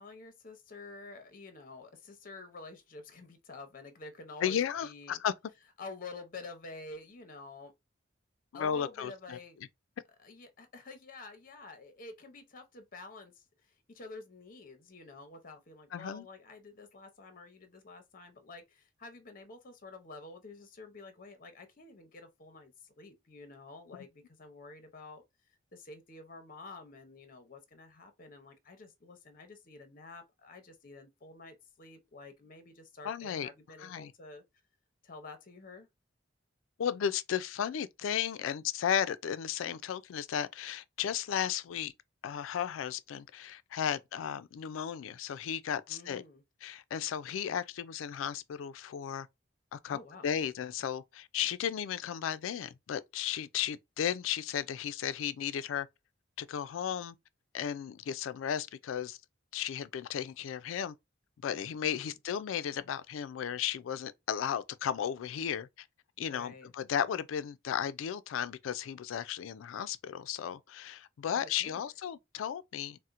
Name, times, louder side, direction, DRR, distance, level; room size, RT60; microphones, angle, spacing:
voice 1, 0.0-5.2 5.8-7.7 8.5-9.6 10.2-25.2 25.7-34.4 35.0-35.9 45.9-46.4 49.9-50.3 61.9-62.1 66.3-66.7 71.3-71.8, left 3 dB, 45° left, 0.7 m, -49 dB
voice 2, 4.4-5.3 8.5-9.4 15.9-16.3 33.0-33.5 33.8-34.1 36.8-41.9 42.2-46.2 46.6-49.3 49.7-50.0 50.2-55.9 56.4-57.1 57.5-59.2 59.5-60.9 61.4-65.7 66.2-73.1, left 9 dB, 80° left, 0.3 m, -34 dB
4.2 x 2.1 x 2.4 m
head